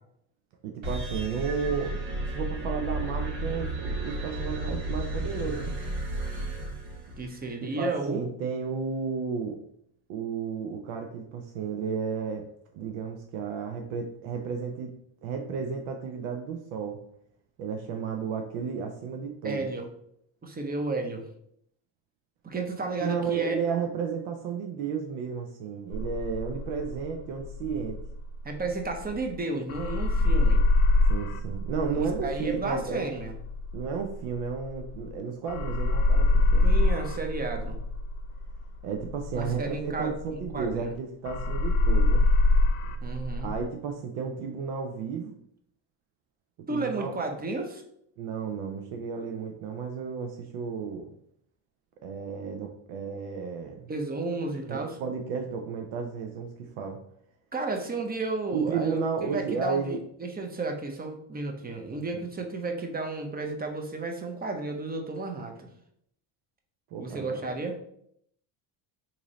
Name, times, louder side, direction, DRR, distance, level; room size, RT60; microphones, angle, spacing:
voice 1, 0.6-2.0 2.3-5.7 7.6-9.6 10.1-12.5 12.7-14.9 15.2-17.0 17.6-19.7 23.0-28.0 31.1-33.1 33.7-36.7 38.8-42.3 43.4-45.3 46.7-47.1 48.2-51.1 52.0-53.9 54.7-57.0 58.5-60.0 62.1-62.2 66.9-67.5, right 6 dB, 85° right, 3 dB, 0.6 m, -33 dB
sound 1, 0.8-7.4, right 2 dB, 70° right, 1.3 m, -33 dB
voice 2, 7.2-8.2 19.4-19.9 20.4-21.2 22.4-23.6 28.4-30.6 32.0-33.3 36.6-37.8 39.3-40.2 40.5-41.0 43.0-43.5 46.7-47.8 53.9-55.0 57.5-65.7 67.0-67.8, right 3 dB, 20° right, 4 dB, 0.6 m, -32 dB
sound 2, 25.9-29.4 29.7-35.2 35.5-41.0 41.3-43.6, left 2 dB, 85° left, 0.6 m, -25 dB
3.0 x 2.7 x 3.8 m, 0.70 s
cardioid pair, 100°, 49 cm